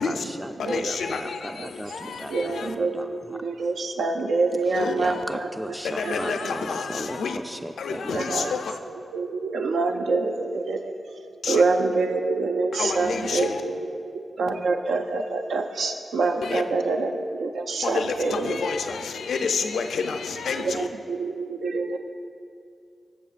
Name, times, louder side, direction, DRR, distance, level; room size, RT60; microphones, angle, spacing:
voice 1, 0.0-3.4 4.7-8.6, equal, 5° right, 0.3 m, -36 dB
voice 2, 0.6-2.8 4.7-5.2 5.8-7.4 7.8-8.8 11.4-11.6 12.7-13.6 16.4-16.6 17.8-20.9, left 5 dB, 85° left, 0.4 m, -29 dB
voice 3, 2.3-5.5 6.0-6.1 6.4-6.5 8.1-8.4 9.1-18.6 20.6-22.0, right 3 dB, 85° right, 0.4 m, -26 dB
14.0 x 7.0 x 2.5 m
cardioid pair, 85°, 0 cm